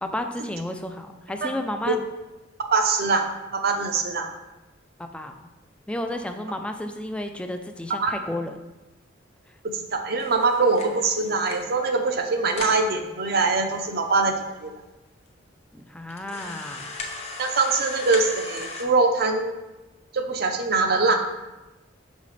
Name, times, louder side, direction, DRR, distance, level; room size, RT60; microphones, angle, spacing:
voice 1, 0.0-2.0 5.0-5.3 5.9-8.6 15.7-16.9, left 1 dB, 5° left, 5 dB, 0.4 m, -32 dB
voice 2, 2.7-4.3 7.9-8.1 9.6-14.3 14.6-14.7 17.4-19.6 20.1-21.2, right 3 dB, 55° right, 5 dB, 0.6 m, -23 dB
sound 1, 10.2-11.8 12.2-12.3 12.5-12.9 13.6-13.7 13.9-14.0 14.7-14.8 15.3-15.4 16.1-18.8, left 3 dB, 35° left, 0.7 m, -37 dB
5.7 x 5.3 x 3.2 m, 1.1 s
head